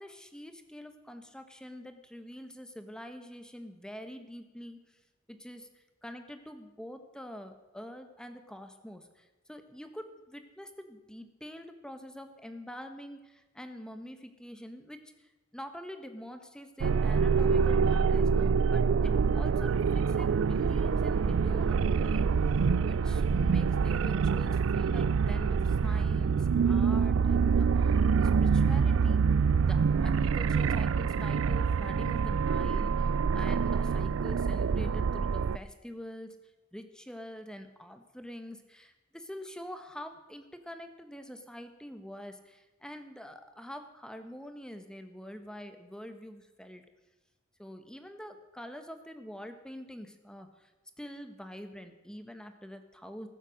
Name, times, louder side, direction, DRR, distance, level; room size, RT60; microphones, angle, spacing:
voice 1, 0.0-5.0 5.3-22.3 22.8-29.2 29.6-36.4 36.7-46.8 47.6-50.7 51.0-53.3, equal, 5° left, 7 dB, 1.2 m, -45 dB
sound 1, 16.8-35.6, right 5 dB, 85° right, 0.4 m, -26 dB
19.0 x 7.6 x 6.5 m, 1.1 s
head